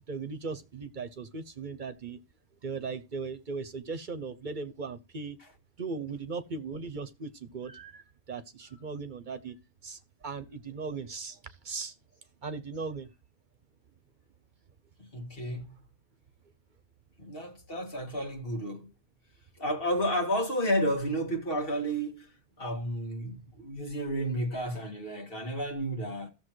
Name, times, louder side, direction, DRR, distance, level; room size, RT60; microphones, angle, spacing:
voice 1, 0.1-2.2 2.6-5.4 5.8-9.5 9.8-11.9 12.4-13.1, right 4 dB, 50° right, 0.9 m, -38 dB
voice 2, 15.0-15.8 17.2-18.9 19.6-22.3 22.6-26.3, equal, 65° left, 2.0 m, -31 dB
14.5 x 7.0 x 3.1 m
omnidirectional pair, 1.0 m